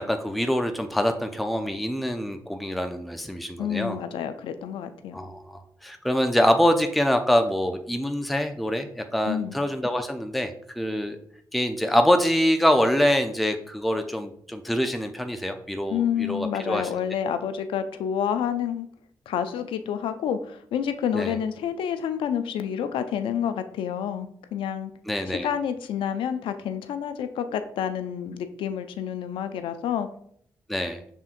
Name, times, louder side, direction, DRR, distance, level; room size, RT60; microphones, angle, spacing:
voice 1, 0.0-4.0 5.1-11.2 11.5-16.9 21.1-21.4 25.1-25.5 30.7-31.0, equal, ahead, 6 dB, 0.5 m, -25 dB
voice 2, 3.6-5.2 9.3-9.5 15.9-18.9 19.3-24.9 25.3-30.1, left 8 dB, 85° left, 10 dB, 0.4 m, -29 dB
5.6 x 3.5 x 2.5 m, 0.66 s
supercardioid pair, 50°, 9 cm